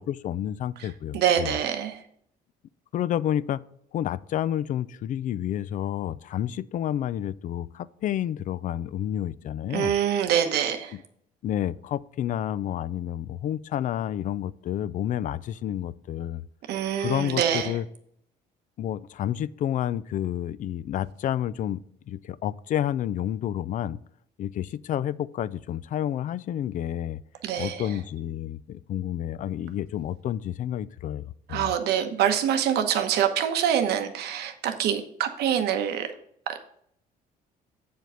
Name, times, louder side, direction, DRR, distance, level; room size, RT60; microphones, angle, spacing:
voice 1, 0.0-1.5 2.9-3.6 3.9-9.9 11.4-16.4 17.0-17.8 18.8-21.8 22.1-24.0 24.4-27.2 27.6-31.7, left 11 dB, 50° left, 0.4 m, -30 dB
voice 2, 0.8-2.0 9.7-11.0 16.7-17.8 27.4-28.0 31.5-36.1 36.5-36.6, right 9 dB, 75° right, 1.0 m, -25 dB
7.8 x 5.1 x 5.6 m
cardioid pair, 110°, 17 cm